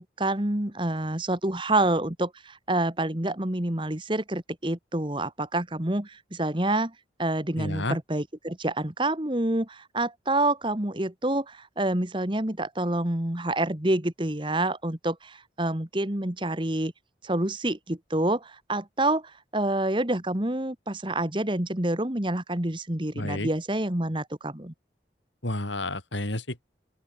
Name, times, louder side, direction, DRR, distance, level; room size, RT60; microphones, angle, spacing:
voice 1, 0.0-6.9 7.2-16.9 17.2-24.7, right 1 dB, 25° right, 1.7 m, -27 dB
voice 2, 7.6-8.0 23.1-23.5 25.4-26.6, left 1 dB, 75° left, 5.6 m, -30 dB
open air
head